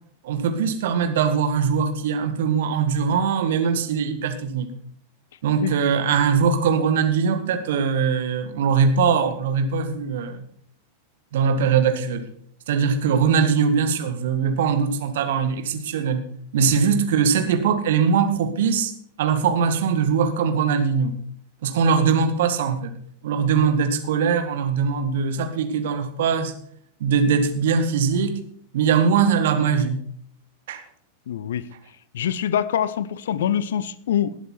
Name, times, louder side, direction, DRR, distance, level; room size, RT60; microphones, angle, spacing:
voice 1, 0.2-4.7 5.4-10.4 11.3-12.3 12.7-16.3 16.5-18.9 19.2-21.2 21.6-22.9 23.2-26.5 27.0-28.4 28.7-30.0 30.7-30.8, right 6 dB, 55° right, 1.7 m, -21 dB
voice 2, 16.6-16.9 31.3-31.7 32.1-34.4, left 9 dB, 60° left, 0.7 m, -25 dB
19.0 x 7.8 x 4.4 m
figure-of-eight pair, 90°, 0 cm